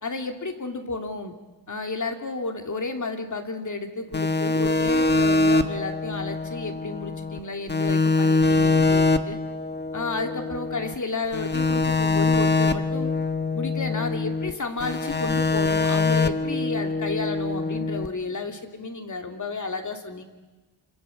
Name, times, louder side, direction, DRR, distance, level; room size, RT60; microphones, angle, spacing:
voice 1, 0.0-1.3 1.7-9.4 9.9-13.1 13.5-20.2, left 3 dB, 35° left, 5 dB, 2.8 m, -32 dB
sound 1, 4.1-7.4 7.7-10.9 11.3-14.5 14.8-18.1, left 3 dB, 20° left, 1.4 m, -23 dB
27.5 x 26.5 x 7.1 m, 1.2 s
wide cardioid pair, 125°, 50 cm